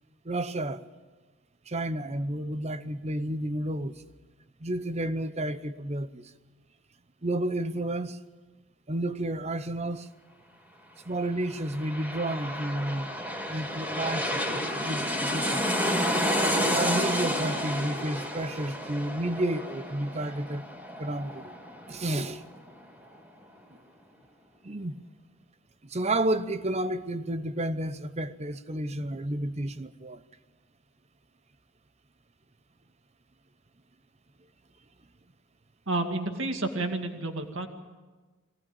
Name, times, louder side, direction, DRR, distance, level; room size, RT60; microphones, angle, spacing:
voice 1, 0.2-0.8 1.7-4.0 4.6-6.3 7.2-8.2 8.9-10.1 11.0-13.1 13.5-15.8 16.7-20.7 21.0-21.5 21.9-22.4 24.6-25.0 25.9-30.2, right 1 dB, 30° right, 0.8 m, -31 dB
sound 1, 11.4-22.8 23.1-23.2, equal, 10° right, 2.7 m, -30 dB
voice 2, 35.9-37.7, right 2 dB, 60° right, 2.1 m, -30 dB
23.0 x 17.5 x 8.8 m
head